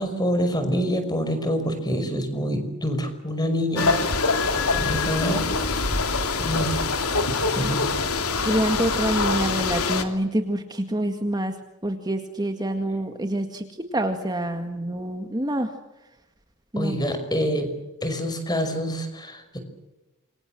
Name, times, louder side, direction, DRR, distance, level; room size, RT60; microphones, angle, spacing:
voice 1, 0.0-4.0 4.7-6.0 6.4-6.8 7.6-8.0 9.2-9.3 16.8-17.7 18.0-19.6, equal, 20° left, 8 dB, 5.4 m, -26 dB
sound 1, 3.8-10.0, left 4 dB, 80° left, 3.0 m, -25 dB
sound 2, 4.4-9.8, equal, 40° left, 7.6 m, -34 dB
voice 2, 8.4-11.6 11.8-13.7 13.9-15.8 16.7-16.9, right 1 dB, 20° right, 6 dB, 1.9 m, -26 dB
28.0 x 24.5 x 7.8 m, 1.0 s
head